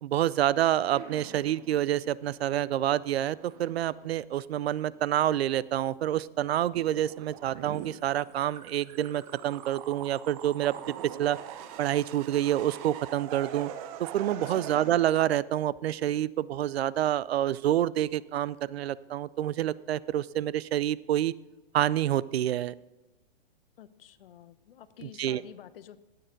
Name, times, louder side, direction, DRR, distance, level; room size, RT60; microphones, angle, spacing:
voice 1, 0.0-10.7 11.2-11.4 11.8-13.7 14.0-21.3 21.7-22.7 25.2-25.4, right 12 dB, 85° right, 20 dB, 0.5 m, -28 dB
sound 1, 0.9-5.0 5.3-6.0 6.3-14.9, right 10 dB, 35° right, 0.9 m, -44 dB
voice 2, 23.8-26.0, left 10 dB, 65° left, 15 dB, 0.8 m, -49 dB
18.0 x 6.7 x 3.9 m, 1.1 s
hypercardioid pair, 145°, 31 cm